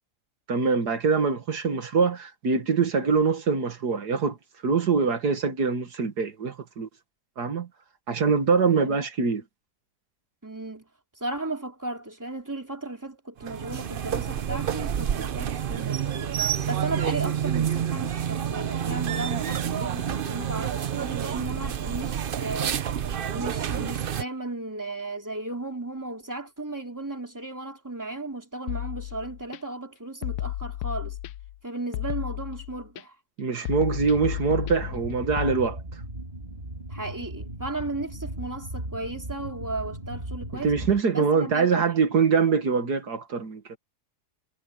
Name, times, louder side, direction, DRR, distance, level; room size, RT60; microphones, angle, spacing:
voice 1, 0.5-4.4 4.6-6.9 7.4-7.7 8.1-9.4 33.4-35.8 40.5-43.8, right 5 dB, 80° right, 2.2 m, -24 dB
voice 2, 10.4-10.8 11.1-16.3 16.7-22.8 23.3-31.2 31.6-33.1 36.9-40.7 41.1-41.8, right 2 dB, 10° right, 3.2 m, -35 dB
sound 1, 13.4-24.2, right 9 dB, 60° right, 0.6 m, -28 dB
sound 2, 28.7-29.6 30.2-31.6 31.9-33.0 33.7-35.5, left 13 dB, 80° left, 1.1 m, -33 dB
sound 3, 34.0-41.0, right 1 dB, 30° right, 2.2 m, -37 dB
omnidirectional pair, 1.7 m